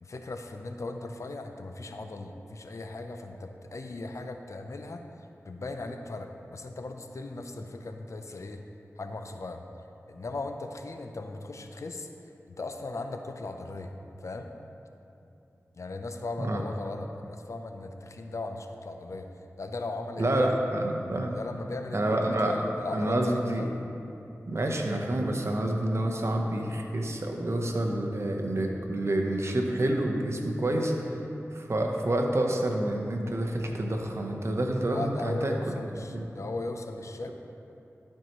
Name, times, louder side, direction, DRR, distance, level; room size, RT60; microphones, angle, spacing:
voice 1, 0.0-5.0 5.4-8.6 9.0-9.6 10.1-12.1 12.5-13.9 14.2-14.5 15.7-19.3 19.6-20.5 21.3-23.8 34.9-37.3, left 2 dB, 65° left, 5 dB, 0.5 m, -38 dB
voice 2, 20.2-21.4 21.9-22.6 22.9-23.7 24.5-30.9 31.5-35.8 36.1-36.3, right 1 dB, 55° right, 2 dB, 0.8 m, -28 dB
12.0 x 4.6 x 3.0 m, 2.9 s
cardioid pair, 45°, 5 cm